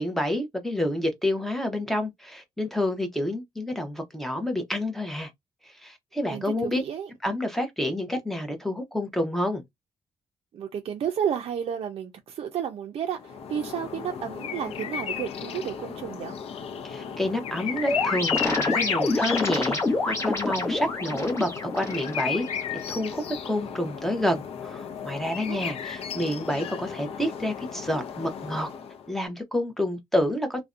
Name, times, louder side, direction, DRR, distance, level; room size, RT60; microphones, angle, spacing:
voice 1, 0.0-5.3 5.8-6.8 7.2-9.6 16.9-22.5 22.7-28.7 29.1-30.6, left 1 dB, 5° left, 0.7 m, -29 dB
voice 2, 6.3-7.1 10.5-16.3 25.5-25.6, right 8 dB, 60° right, 0.4 m, -32 dB
sound 1, 13.2-29.1, left 7 dB, 65° left, 0.5 m, -34 dB
sound 2, 17.8-22.8, left 2 dB, 25° left, 0.9 m, -28 dB
2.5 x 2.1 x 2.4 m
cardioid pair, 115°, 11 cm